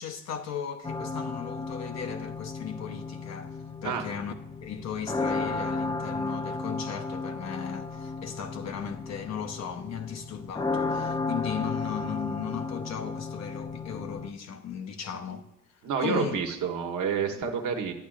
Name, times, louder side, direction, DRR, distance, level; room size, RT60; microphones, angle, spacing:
voice 1, 0.0-4.3 4.6-15.5 16.0-16.4, left 7 dB, 60° left, 0.8 m, -36 dB
sound 1, 0.8-14.3, left 3 dB, 15° left, 0.4 m, -34 dB
voice 2, 15.8-17.9, right 7 dB, 80° right, 1.1 m, -29 dB
10.5 x 8.7 x 2.4 m
cardioid pair, 90°, 30 cm